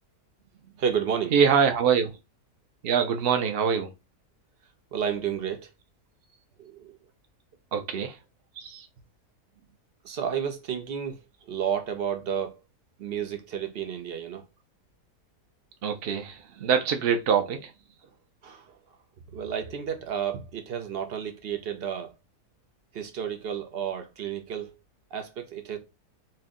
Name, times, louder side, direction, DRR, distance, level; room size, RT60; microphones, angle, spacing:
voice 1, 0.8-1.3 4.9-5.7 6.6-7.0 10.0-12.6 13.0-14.5 18.4-19.0 19.3-22.1 22.9-24.7 25.1-25.8, right 8 dB, 55° right, 0.7 m, -31 dB
voice 2, 1.3-2.1 2.8-3.9 7.7-8.2 8.6-8.9 15.8-17.7, right 7 dB, 90° right, 0.5 m, -24 dB
4.3 x 2.1 x 3.6 m
omnidirectional pair, 1.7 m